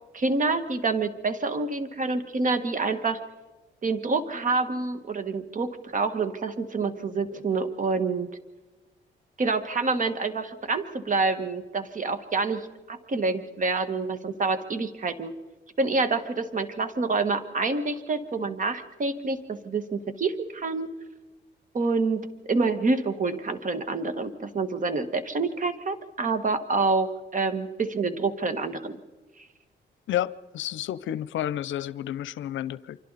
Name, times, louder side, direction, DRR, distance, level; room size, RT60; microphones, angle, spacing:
voice 1, 0.1-3.2 3.8-8.3 9.4-15.3 15.8-20.9 21.7-29.0, right 3 dB, 40° right, 11 dB, 1.7 m, -27 dB
voice 2, 30.1-33.0, left 11 dB, 75° left, 18 dB, 0.7 m, -30 dB
29.0 x 24.5 x 4.2 m, 1.2 s
cardioid pair, 90°, 20 cm